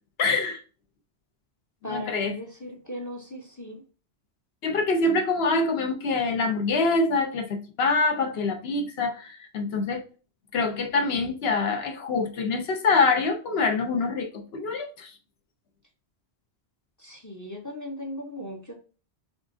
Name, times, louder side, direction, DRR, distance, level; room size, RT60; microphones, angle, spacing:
voice 1, 0.2-0.6 1.8-2.3 4.6-10.0 10.5-15.2, left 3 dB, 70° left, 1.0 m, -25 dB
voice 2, 1.8-3.8 17.0-18.7, left 1 dB, 20° left, 0.6 m, -37 dB
5.9 x 2.5 x 2.5 m
omnidirectional pair, 1.1 m